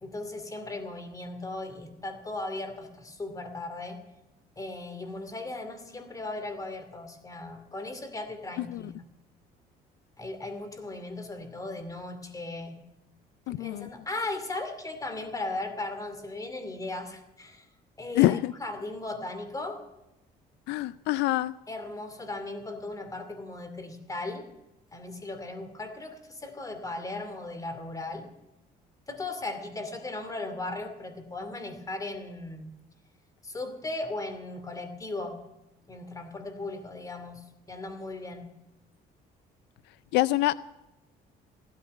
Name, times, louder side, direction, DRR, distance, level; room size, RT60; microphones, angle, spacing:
voice 1, 0.0-4.0 4.6-9.0 10.2-12.8 13.5-17.7 18.0-19.8 21.7-24.5 24.9-28.3 29.1-32.7 33.4-35.4 35.9-38.5, left 2 dB, 20° left, 8 dB, 2.5 m, -37 dB
voice 2, 13.5-13.9 18.2-18.5 20.7-21.5 40.1-40.6, left 17 dB, 85° left, 17 dB, 0.4 m, -25 dB
15.5 x 13.0 x 5.4 m, 0.93 s
cardioid pair, 110°, 17 cm